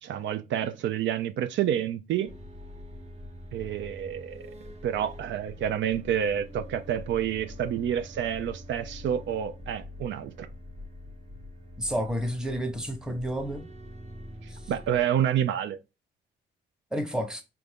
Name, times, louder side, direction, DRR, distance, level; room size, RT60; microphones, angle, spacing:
voice 1, 0.0-2.3 3.5-4.4 4.8-10.5 14.7-15.8, right 10 dB, 75° right, 0.4 m, -28 dB
sound 1, 2.2-15.0, left 1 dB, 35° right, 0.9 m, -44 dB
voice 2, 11.8-13.7 14.5-14.6 16.9-17.4, equal, 5° right, 0.9 m, -30 dB
4.6 x 2.6 x 3.4 m
cardioid pair, 95°, 19 cm